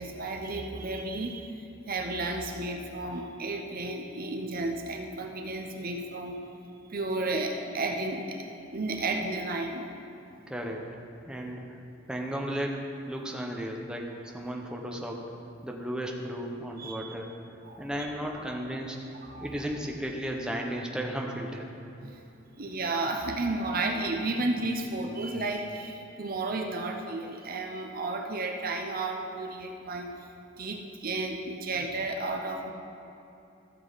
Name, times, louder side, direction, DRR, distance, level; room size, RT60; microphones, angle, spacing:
voice 1, 0.0-6.4 6.9-8.5 8.7-9.8 16.8-17.2 17.6-17.9 19.1-19.6 22.0-30.1 30.6-32.7, right 2 dB, 50° right, 3 dB, 0.8 m, -33 dB
voice 2, 10.5-10.9 11.3-11.6 12.1-15.3 15.6-17.3 17.8-19.0 19.4-21.7, equal, 5° right, 0 dB, 0.9 m, -34 dB
14.5 x 7.3 x 4.0 m, 2.9 s
head